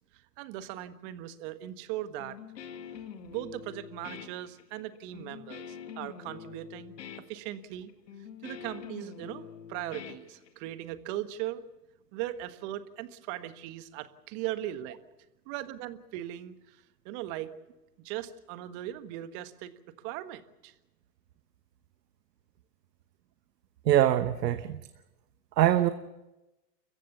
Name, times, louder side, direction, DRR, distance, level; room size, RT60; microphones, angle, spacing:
voice 1, 0.1-2.4 3.3-6.9 7.3-7.9 8.4-11.6 12.1-15.0 15.4-17.5 18.0-20.7, right 13 dB, 45° right, 11 dB, 1.6 m, -39 dB
Guitar, 2.2-10.8, left 8 dB, 80° left, 2.2 m, -45 dB
voice 2, 23.8-24.8 25.6-25.9, right 12 dB, 75° right, 11 dB, 1.2 m, -23 dB
29.0 x 15.0 x 7.0 m, 1.0 s
hypercardioid pair, 120°, 49 cm